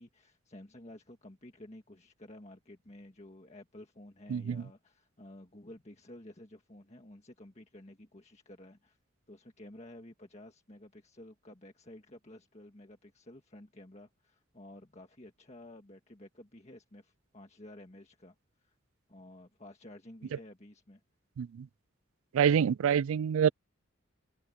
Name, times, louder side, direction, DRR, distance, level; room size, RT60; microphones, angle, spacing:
voice 1, 0.0-9.0 9.3-18.7 19.1-21.0, left 1 dB, 30° left, 1.7 m, -52 dB
voice 2, 4.3-4.6 21.4-21.7 22.3-23.5, right 8 dB, 80° right, 0.3 m, -26 dB
head